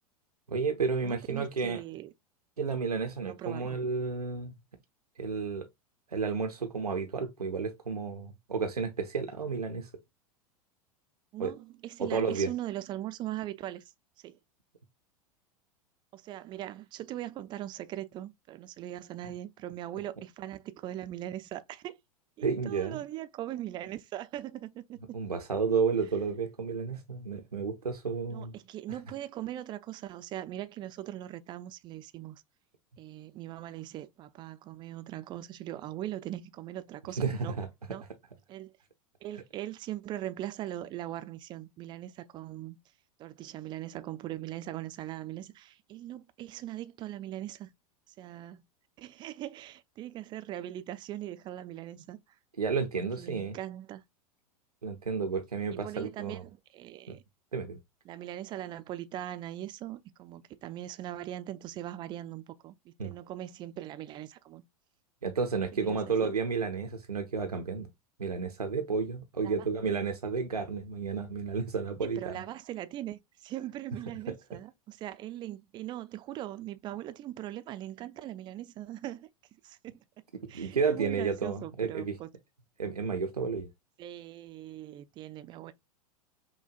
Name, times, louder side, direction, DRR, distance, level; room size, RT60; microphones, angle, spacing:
voice 1, 0.5-1.8 2.6-4.5 5.2-5.7 6.1-9.9 11.4-11.5 12.0-12.5 22.4-23.0 25.1-28.5 37.2-37.7 52.6-53.6 54.8-56.4 57.1-57.2 57.5-57.8 63.0-63.1 65.2-67.9 68.2-72.4 80.4-82.2 82.8-83.7, right 5 dB, 85° right, 0.5 m, -31 dB
voice 2, 1.0-2.1 3.2-3.8 11.3-13.8 14.2-14.4 16.1-22.0 22.4-25.2 28.3-32.4 33.0-37.6 37.9-38.0 38.5-38.7 39.2-42.8 43.2-47.7 48.2-48.6 49.0-52.2 53.2-54.0 55.7-57.2 58.1-64.6 65.7-66.3 69.4-69.6 72.0-79.3 79.6-80.2 80.5-82.3 84.0-85.7, right 13 dB, 25° right, 0.4 m, -40 dB
5.8 x 2.1 x 2.4 m
figure-of-eight pair, 90°, 19 cm